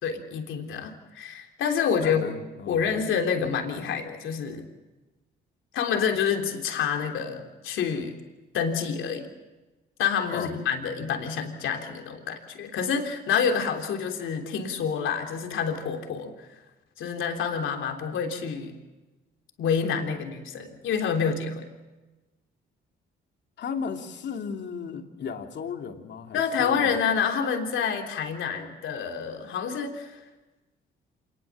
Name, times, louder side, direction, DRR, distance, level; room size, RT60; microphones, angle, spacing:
voice 1, 0.0-2.3 2.7-4.7 5.7-8.1 8.5-9.3 10.0-16.5 17.0-18.7 19.6-21.7 26.3-30.2, left 6 dB, 80° left, 3 dB, 3.4 m, -28 dB
voice 2, 2.0-3.0 10.3-10.5 23.6-27.0, left 6 dB, 60° left, 4 dB, 2.9 m, -35 dB
27.0 x 20.5 x 7.4 m, 1.1 s
cardioid pair, 90°, 20 cm